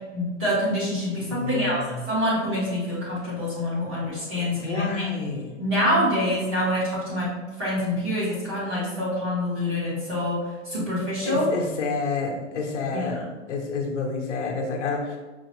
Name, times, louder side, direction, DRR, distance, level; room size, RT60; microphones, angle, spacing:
voice 1, 0.1-1.8 2.1-5.0 5.6-7.3 7.6-11.5 12.9-13.3, left 1 dB, 20° right, -8 dB, 0.9 m, -26 dB
voice 2, 1.3-1.9 4.4-5.5 11.2-15.2, left 4 dB, 65° left, 0 dB, 0.8 m, -29 dB
4.6 x 2.0 x 3.0 m, 1.3 s
hypercardioid pair, 175°, 38 cm